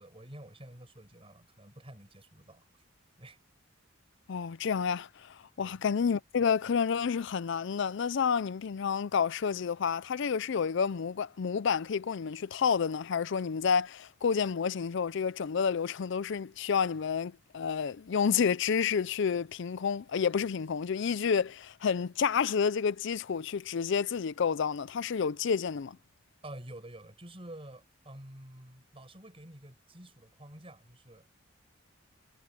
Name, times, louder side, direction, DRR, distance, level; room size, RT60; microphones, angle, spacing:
voice 1, 0.0-2.8 3.2-3.4 5.6-5.8 26.4-31.3, right 1 dB, 30° right, 5.6 m, -49 dB
voice 2, 4.3-26.0, left 6 dB, 65° left, 0.4 m, -30 dB
head